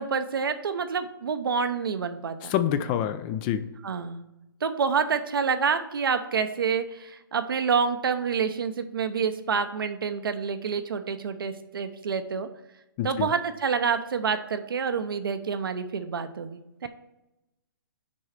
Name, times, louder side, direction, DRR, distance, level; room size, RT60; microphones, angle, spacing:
voice 1, 0.0-2.5 3.8-4.2 4.6-12.5 13.0-16.9, right 6 dB, 70° right, 9 dB, 0.9 m, -28 dB
voice 2, 2.5-3.6 13.0-13.3, left 10 dB, 25° left, 12 dB, 0.5 m, -26 dB
6.3 x 4.7 x 5.8 m, 0.93 s
hypercardioid pair, 135°, 12 cm